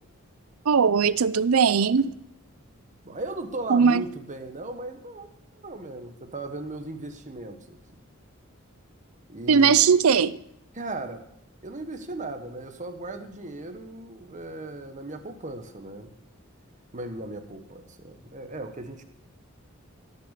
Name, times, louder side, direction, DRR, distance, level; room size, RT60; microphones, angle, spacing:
voice 1, 0.6-2.2 3.7-4.0 9.5-10.4, right 6 dB, 90° right, 0.5 m, -19 dB
voice 2, 3.0-5.3 5.6-7.8 9.3-9.8 10.7-11.3 11.6-16.1 16.9-19.0, right 2 dB, 35° right, 1.3 m, -37 dB
17.0 x 6.9 x 6.7 m
head